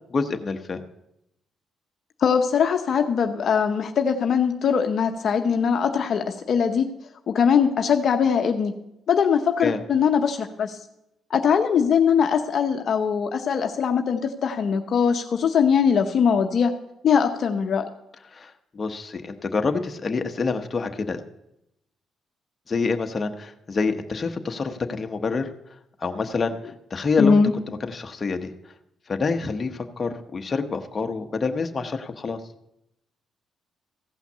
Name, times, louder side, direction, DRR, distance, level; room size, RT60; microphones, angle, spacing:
voice 1, 0.1-0.8 9.6-9.8 18.3-21.2 22.7-25.5 26.0-26.5 26.9-27.4 27.7-28.5 29.1-32.4, left 4 dB, 35° left, 5 dB, 1.0 m, -27 dB
voice 2, 2.2-6.9 7.3-8.7 9.1-10.8 11.3-16.7 17.0-17.8 27.2-27.5, left 6 dB, 60° left, 5 dB, 0.8 m, -21 dB
15.5 x 5.8 x 6.7 m, 0.84 s
cardioid pair, 90°, 0 cm